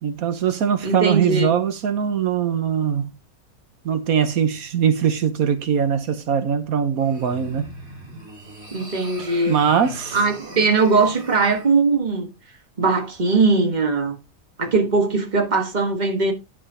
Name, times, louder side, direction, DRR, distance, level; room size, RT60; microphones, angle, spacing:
voice 1, 0.0-3.1 3.8-7.7 9.5-10.2, right 8 dB, 80° right, 1.4 m, -21 dB
voice 2, 0.8-1.5 8.7-9.6 10.1-12.3 12.8-14.2 14.6-16.3, right 3 dB, 30° right, 1.6 m, -20 dB
sound 1, 7.0-11.7, right 2 dB, 50° right, 3.1 m, -39 dB
11.0 x 5.0 x 4.9 m
omnidirectional pair, 1.5 m